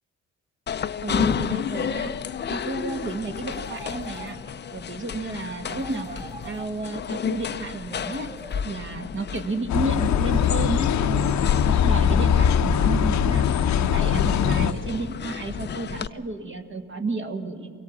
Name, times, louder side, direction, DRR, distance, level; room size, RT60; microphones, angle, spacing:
sound 1, 0.7-16.1, left 7 dB, 35° left, 0.6 m, -31 dB
voice 1, 1.0-2.1 2.5-4.4 4.7-8.3 8.6-11.3 11.6-13.5 13.8-17.7, right 3 dB, 40° right, 5 dB, 1.7 m, -32 dB
sound 2, 3.5-4.8 5.7-7.2 7.9-9.1 9.8-11.0, right 2 dB, 20° right, 1.6 m, -43 dB
sound 3, 9.7-14.7, left 8 dB, 70° left, 0.8 m, -21 dB
23.5 x 17.5 x 7.2 m, 2.2 s
cardioid pair, 90°, 30 cm